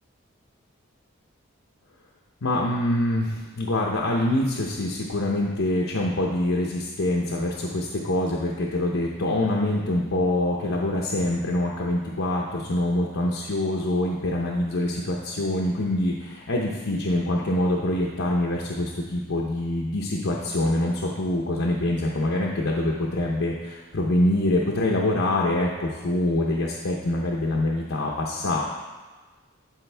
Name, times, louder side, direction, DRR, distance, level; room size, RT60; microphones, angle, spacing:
voice 1, 2.4-28.6, left 1 dB, 80° left, -3 dB, 0.8 m, -25 dB
12.5 x 4.2 x 3.4 m, 1.3 s
head